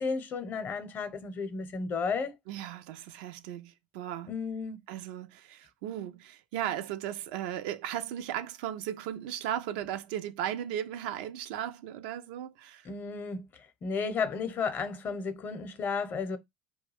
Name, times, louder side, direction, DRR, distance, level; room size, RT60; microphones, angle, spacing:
voice 1, 0.0-2.3 4.3-4.8 12.9-13.5 13.8-16.4, left 5 dB, 45° left, 0.6 m, -33 dB
voice 2, 2.5-4.3 4.9-12.9, right 11 dB, 70° right, 0.3 m, -36 dB
2.3 x 2.2 x 3.1 m
hypercardioid pair, 70°, 5 cm